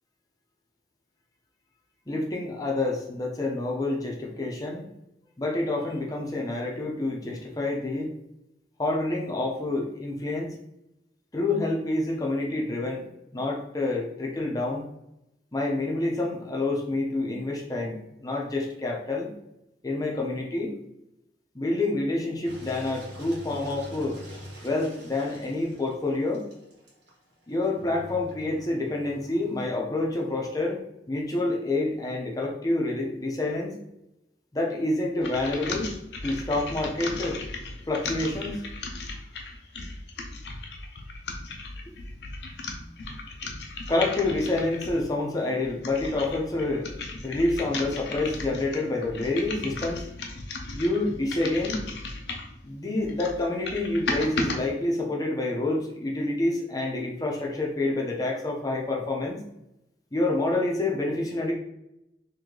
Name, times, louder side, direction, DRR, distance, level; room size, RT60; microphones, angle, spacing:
voice 1, 2.1-4.8 5.4-8.1 8.8-10.5 11.3-14.8 15.5-19.3 19.8-20.7 21.5-24.2 24.6-26.5 27.5-30.8 31.1-33.7 34.5-36.0 36.2-37.4 37.9-38.7 43.9-46.9 47.2-50.0 50.7-51.9 52.6-59.4 60.1-61.5, left 2 dB, 20° left, -1 dB, 0.6 m, -28 dB
Engine, 22.4-29.8, equal, 70° right, 1.3 m, -45 dB
sound 1, 35.2-45.1 45.6-52.6 53.0-54.6, left 3 dB, 70° left, 0.5 m, -36 dB
3.1 x 2.7 x 3.8 m, 0.85 s
head